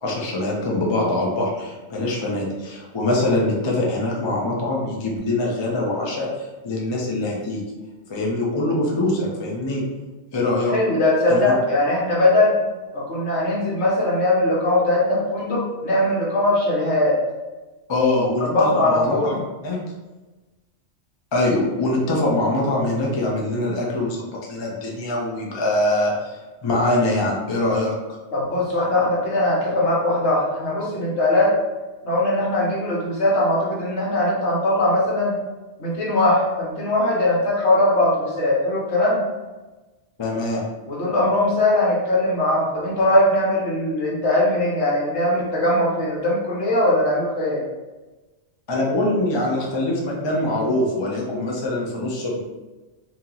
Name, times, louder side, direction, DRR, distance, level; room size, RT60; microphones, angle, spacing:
voice 1, 0.0-6.3 6.6-7.6 8.1-9.8 10.3-10.8 11.3-11.6 17.9-19.4 19.6-19.8 21.3-27.9 40.2-40.6 48.7-52.4, left 1 dB, 30° left, -2 dB, 0.5 m, -23 dB
voice 2, 10.7-12.6 12.9-17.2 18.4-19.4 28.3-31.5 32.0-35.4 35.8-39.2 40.9-47.6, left 1 dB, 70° left, -5 dB, 1.3 m, -20 dB
2.9 x 2.9 x 3.8 m, 1.2 s
omnidirectional pair, 1.2 m